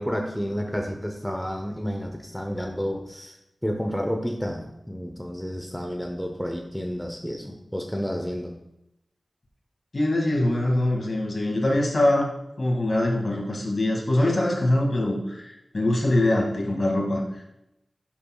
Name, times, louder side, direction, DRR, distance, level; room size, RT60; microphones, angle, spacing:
voice 1, 0.0-3.4 3.6-8.5, equal, 5° left, 3 dB, 0.8 m, -30 dB
voice 2, 9.9-12.3 12.6-17.4, left 1 dB, 50° left, -1 dB, 2.2 m, -23 dB
11.0 x 6.8 x 2.4 m, 0.86 s
wide cardioid pair, 80°, 0 cm